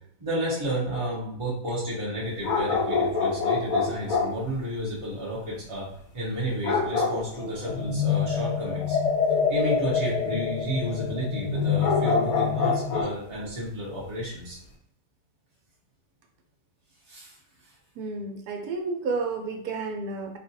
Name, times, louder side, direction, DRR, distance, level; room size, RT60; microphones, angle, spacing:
voice 1, 0.2-5.9 6.1-9.0 9.3-14.6 17.1-17.7, equal, 35° right, -6 dB, 0.5 m, -31 dB
sound 1, 2.4-4.4 6.6-7.9 11.5-13.2 13.4-13.5, left 4 dB, 65° left, 1.0 m, -26 dB
sound 2, 7.6-13.0, left 6 dB, 85° left, 1.4 m, -27 dB
voice 2, 18.0-20.4, right 4 dB, 70° right, 3 dB, 1.0 m, -31 dB
3.6 x 2.4 x 2.7 m, 0.71 s
omnidirectional pair, 1.9 m